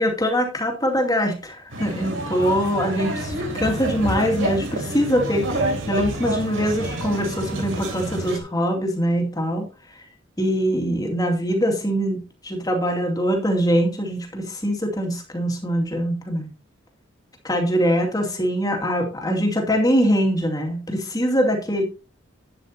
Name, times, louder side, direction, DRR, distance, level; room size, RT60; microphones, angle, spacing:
voice 1, 0.0-9.6 10.4-16.5 17.4-21.8, equal, 20° left, 2 dB, 2.4 m, -23 dB
sound 1, 1.7-8.4, right 1 dB, 75° right, 3.2 m, -28 dB
12.0 x 9.0 x 2.9 m, 0.31 s
head